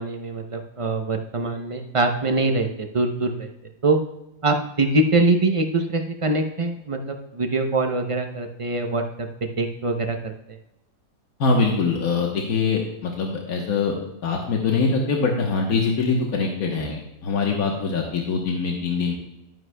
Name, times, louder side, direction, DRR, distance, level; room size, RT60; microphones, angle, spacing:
voice 1, 0.0-3.5 3.8-4.0 4.4-9.3 9.6-10.6, right 2 dB, 40° right, 4 dB, 0.4 m, -23 dB
voice 2, 11.4-13.9 14.2-19.1, left 4 dB, 90° left, 0 dB, 1.5 m, -23 dB
12.0 x 9.4 x 2.2 m, 0.86 s
omnidirectional pair, 1.5 m